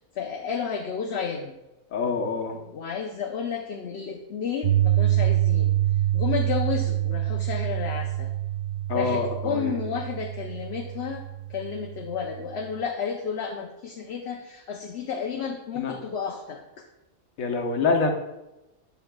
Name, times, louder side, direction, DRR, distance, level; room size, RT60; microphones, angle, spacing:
voice 1, 0.1-1.6 2.5-5.7 6.1-8.3 8.9-11.2 11.5-16.8, left 6 dB, 60° left, 2 dB, 0.8 m, -32 dB
voice 2, 1.9-2.6 8.9-9.7 15.8-15.9 17.4-18.1, left 4 dB, 85° left, 3 dB, 1.4 m, -25 dB
Piano, 4.6-12.7, right 13 dB, 75° right, 0.4 m, -26 dB
10.5 x 7.2 x 2.2 m, 0.98 s
omnidirectional pair, 1.4 m